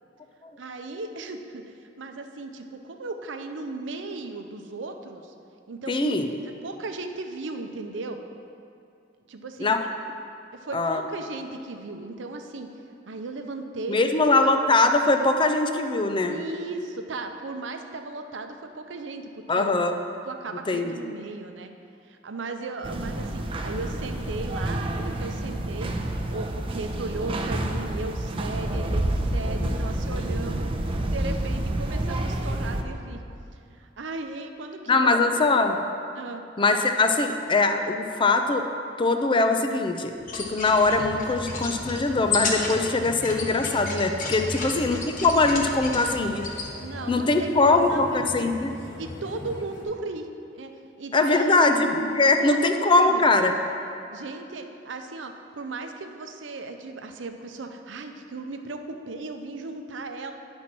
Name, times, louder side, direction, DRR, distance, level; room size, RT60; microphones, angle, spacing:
voice 1, 0.6-5.3 5.7-6.2 6.4-8.2 9.3-9.8 10.5-12.7 13.1-14.5 16.3-19.3 19.5-19.7 20.3-21.7 22.1-25.9 26.3-30.7 31.1-33.2 33.8-35.4 36.1-36.4 44.4-44.7 46.0-46.2 46.8-48.5 49.0-51.5 52.4-53.2 54.1-60.3, right 3 dB, 75° right, 6 dB, 0.6 m, -36 dB
voice 2, 5.9-6.3 9.6-9.9 10.7-11.0 13.9-16.4 19.5-20.0 20.7-20.9 34.9-35.8 36.6-38.7 39.0-46.4 47.1-48.7 51.1-53.5, left 3 dB, 25° left, 7 dB, 0.5 m, -22 dB
sound 1, 22.8-32.8, right 1 dB, 30° right, 0.5 m, -29 dB
sound 2, 40.2-46.7, left 3 dB, 45° left, 1.1 m, -33 dB
sound 3, 40.9-49.8, left 1 dB, 70° left, 1.4 m, -39 dB
9.9 x 4.3 x 6.0 m, 2.5 s
head